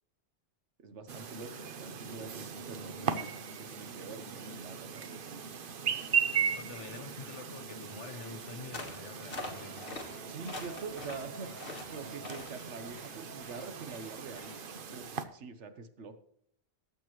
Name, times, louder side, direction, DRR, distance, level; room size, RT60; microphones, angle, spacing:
voice 1, 0.8-5.4 10.3-11.5 11.9-14.6 14.9-16.2, right 4 dB, 80° right, 9 dB, 1.3 m, -45 dB
Chirp tweet, 1.1-15.2, right 6 dB, 55° right, 0.9 m, -38 dB
voice 2, 6.6-9.8, left 4 dB, 80° left, 7 dB, 1.6 m, -46 dB
sound 1, 8.7-9.0 9.3-10.1 10.4-11.2 11.6-11.9 12.2-12.5, left 2 dB, 55° left, 1.8 m, -42 dB
sound 2, 9.3-14.7, equal, 35° right, 4.7 m, -58 dB
18.0 x 7.2 x 3.1 m, 0.71 s
omnidirectional pair, 1.2 m